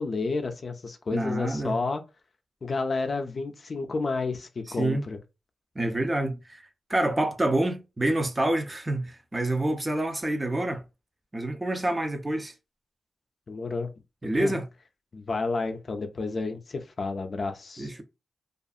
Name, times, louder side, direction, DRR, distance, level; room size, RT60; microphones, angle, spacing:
voice 1, 0.0-2.0 2.6-5.2 13.5-13.9 14.3-14.5 15.1-18.0, left 3 dB, 50° left, 0.4 m, -31 dB
voice 2, 1.1-1.7 4.8-5.0 5.8-6.6 6.9-10.8 11.3-12.5 14.2-14.7 17.8-18.0, right 1 dB, 25° right, 0.5 m, -27 dB
2.6 x 2.4 x 2.4 m
cardioid pair, 85°, 0 cm